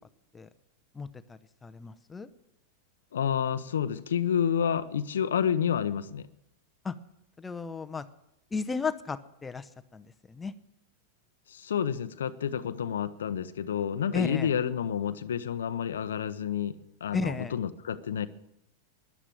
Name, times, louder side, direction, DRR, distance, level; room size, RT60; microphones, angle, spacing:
voice 1, 0.9-2.3 6.8-6.9 7.4-8.0 8.5-10.5 14.1-14.5 17.1-17.5, left 5 dB, 15° left, 11 dB, 0.8 m, -34 dB
voice 2, 3.1-6.3 11.5-18.3, left 8 dB, 85° left, 12 dB, 0.7 m, -29 dB
13.5 x 11.0 x 7.6 m, 0.84 s
hypercardioid pair, 110°, 0 cm